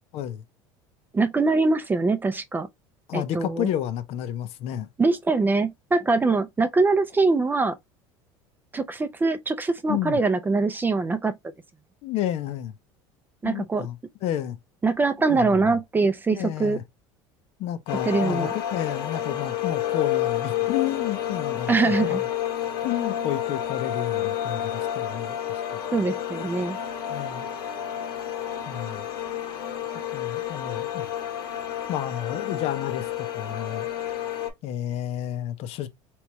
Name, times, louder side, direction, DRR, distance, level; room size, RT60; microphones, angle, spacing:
voice 1, 0.1-0.4 3.1-4.9 9.9-10.2 12.0-12.7 13.4-14.6 15.3-15.7 16.3-16.8 17.6-22.3 22.8-25.4 25.7-25.8 27.1-27.5 28.7-29.1 30.1-31.1 31.9-33.9 34.6-35.9, left 11 dB, 60° left, 0.7 m, -31 dB
voice 2, 1.1-2.7 3.1-3.7 5.0-7.8 8.7-11.3 13.4-13.9 14.8-16.8 18.1-18.5 21.7-22.2 25.9-26.8, right 3 dB, 15° right, 0.5 m, -23 dB
sound 1, 17.9-34.5, left 11 dB, 85° left, 1.2 m, -30 dB
3.4 x 3.1 x 3.0 m
supercardioid pair, 100°, 12 cm